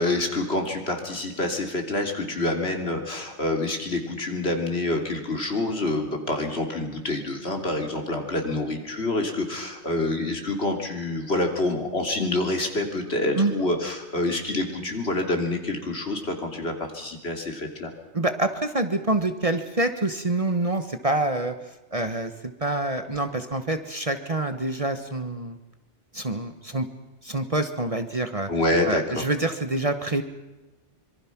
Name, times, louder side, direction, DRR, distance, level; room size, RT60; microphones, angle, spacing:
voice 1, 0.0-17.9 28.5-29.3, left 2 dB, 60° left, 3 dB, 3.3 m, -27 dB
voice 2, 13.4-13.7 18.1-21.5 21.9-22.3 22.6-25.6 26.1-26.9 27.2-28.5 28.8-30.2, right 2 dB, 30° right, 8 dB, 1.2 m, -26 dB
25.5 x 23.0 x 6.0 m, 1.1 s
omnidirectional pair, 1.2 m